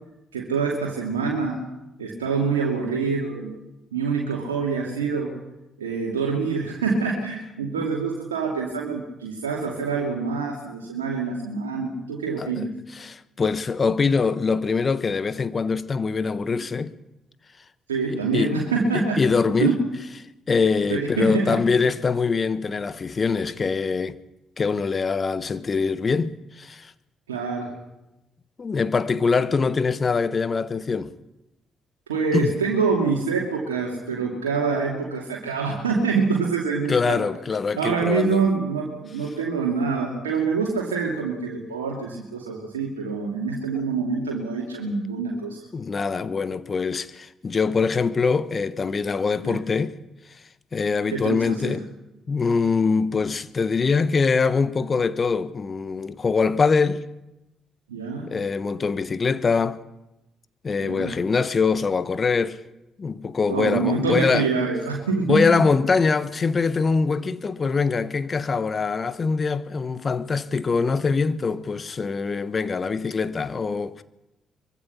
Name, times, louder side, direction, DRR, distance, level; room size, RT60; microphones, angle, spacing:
voice 1, 0.3-1.6 2.0-3.6 3.9-5.3 5.8-12.7 17.9-19.2 19.6-19.8 20.9-21.6 27.3-27.7 32.1-37.2 37.8-45.6 49.4-49.6 51.1-51.8 57.9-58.3 60.8-61.2 63.5-65.5, right 4 dB, 85° right, 2.8 m, -25 dB
voice 2, 12.9-16.9 18.1-18.6 18.9-19.8 20.5-24.2 24.6-26.9 28.6-31.1 32.3-32.5 36.9-38.5 45.3-50.0 50.7-51.9 52.3-57.0 58.3-59.8 60.6-62.6 63.0-64.5 65.3-74.0, left 5 dB, 40° left, 1.4 m, -23 dB
24.0 x 23.5 x 5.9 m
figure-of-eight pair, 45°, 0 cm